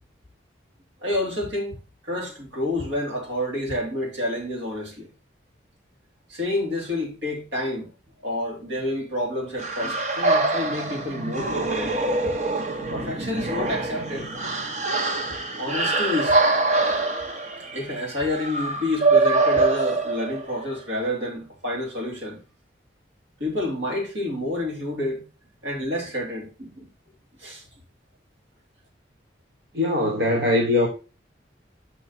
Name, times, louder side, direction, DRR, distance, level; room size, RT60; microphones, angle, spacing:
voice 1, 1.0-1.8 2.0-5.1 6.3-7.9 8.2-11.9 12.9-14.3 15.6-16.4 17.7-22.4 23.4-25.2 25.6-26.9 27.4-27.6, left 1 dB, 85° right, 3.3 m, -29 dB
sound 1, 9.6-20.6, right 3 dB, 40° right, 0.8 m, -24 dB
voice 2, 29.7-30.9, left 1 dB, 65° right, 1.2 m, -21 dB
6.0 x 5.8 x 4.2 m
head